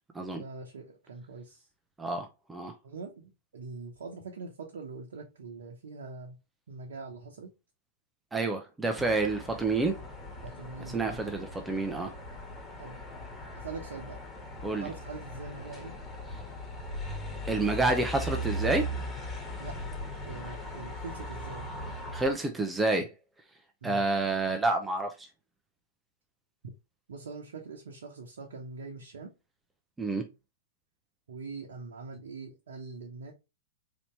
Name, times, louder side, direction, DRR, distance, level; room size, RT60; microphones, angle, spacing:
voice 1, 0.3-1.7 2.8-6.4 6.7-7.5 10.4-11.3 12.8-13.0 13.5-14.2 14.8-15.9 19.6-19.8 20.3-21.9 23.8-24.0 26.6-26.7 27.1-29.3 31.3-33.3, right 4 dB, 75° right, 0.9 m, -43 dB
voice 2, 2.0-2.7 8.3-10.0 10.9-12.1 14.6-14.9 17.5-18.9 22.1-23.1 23.8-25.3 30.0-30.3, right 3 dB, 10° right, 0.7 m, -29 dB
sound 1, 8.9-22.3, equal, 20° left, 1.5 m, -39 dB
4.2 x 2.9 x 3.2 m
hypercardioid pair, 110°, 0 cm